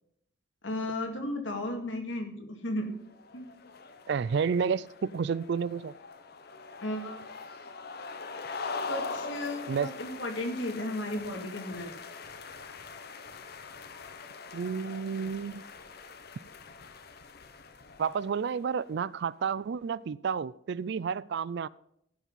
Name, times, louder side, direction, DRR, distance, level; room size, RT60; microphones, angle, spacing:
voice 1, 0.6-2.9 3.3-3.5 6.8-7.2 8.9-11.9, left 1 dB, 75° left, 4 dB, 2.1 m, -34 dB
sound 1, 3.1-18.7, left 4 dB, 55° left, 0.9 m, -42 dB
voice 2, 4.1-4.8 5.1-5.9 9.7-9.9 14.5-15.6 18.0-21.7, right 6 dB, 60° right, 21 dB, 0.4 m, -30 dB
15.0 x 5.9 x 5.6 m, 0.74 s
head